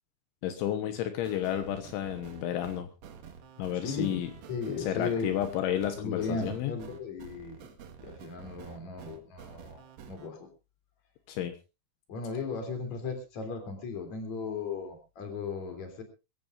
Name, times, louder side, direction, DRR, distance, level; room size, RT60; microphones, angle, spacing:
voice 1, 0.4-2.9 3.6-4.3 4.8-6.8 11.3-11.5, left 11 dB, 80° left, 7 dB, 3.5 m, -31 dB
sound 1, 1.2-10.3, right 7 dB, 60° right, 3.0 m, -49 dB
voice 2, 3.8-4.2 4.5-5.3 6.0-7.6 8.0-10.5 12.1-16.0, left 4 dB, 40° left, 6 dB, 4.1 m, -36 dB
22.0 x 16.5 x 2.6 m, 0.29 s
omnidirectional pair, 5.5 m